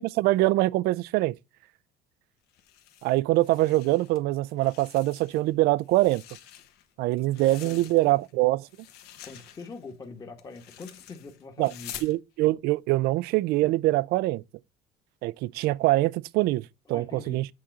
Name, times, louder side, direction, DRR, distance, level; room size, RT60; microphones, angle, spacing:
voice 1, 0.0-1.3 3.0-6.2 7.0-8.7 11.6-11.7 12.0-14.4 15.2-17.5, right 18 dB, 60° right, 0.4 m, -24 dB
sound 1, 2.5-4.2 4.5-5.5 5.8-8.3 8.6-12.1, left 11 dB, 65° left, 1.2 m, -47 dB
voice 2, 7.6-8.2 9.2-12.1 16.9-17.4, left 4 dB, 20° left, 1.3 m, -43 dB
8.7 x 3.8 x 6.6 m
cardioid pair, 150°, 18 cm